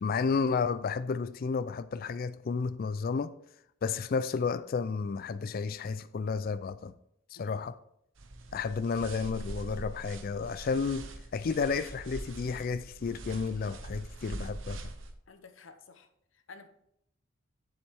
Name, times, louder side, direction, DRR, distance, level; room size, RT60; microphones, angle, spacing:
voice 1, 0.0-3.3 3.8-6.9 7.3-7.7 8.5-11.1 11.3-14.8, left 5 dB, 45° left, 0.3 m, -32 dB
sound 1, 8.2-15.1, right 2 dB, 70° right, 0.8 m, -43 dB
voice 2, 15.3-16.7, left 4 dB, 70° left, 0.8 m, -53 dB
7.5 x 7.2 x 3.4 m
head